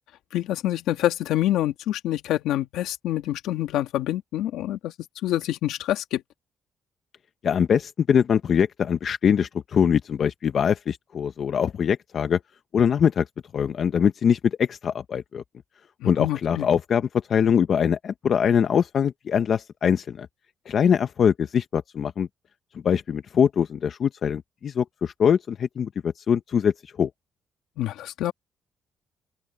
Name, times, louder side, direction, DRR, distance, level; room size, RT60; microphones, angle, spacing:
voice 1, 0.3-4.9 5.2-6.2 16.0-16.7 27.8-28.3, left 13 dB, 90° left, 2.2 m, -26 dB
voice 2, 7.4-12.4 12.7-13.3 13.5-15.4 16.0-17.0 17.3-20.3 20.7-22.3 22.8-27.1, left 7 dB, 55° left, 0.8 m, -23 dB
open air
cardioid pair, 90°, 0 cm